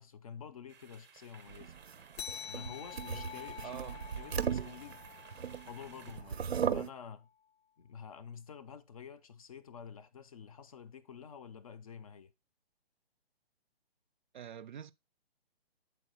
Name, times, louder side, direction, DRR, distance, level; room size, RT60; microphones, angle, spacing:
voice 1, 0.0-1.7 2.5-5.0 5.6-7.3 7.8-12.3, left 7 dB, 35° left, 0.5 m, -49 dB
sound 1, 0.7-6.2, right 6 dB, 10° right, 0.6 m, -58 dB
sound 2, 1.5-5.7 6.1-6.9, right 7 dB, 90° right, 0.7 m, -37 dB
sound 3, 2.2-7.1, left 9 dB, 85° left, 0.5 m, -48 dB
voice 2, 3.6-4.0 14.3-14.9, right 8 dB, 50° right, 0.5 m, -45 dB
7.5 x 4.1 x 4.2 m
hypercardioid pair, 150°, 31 cm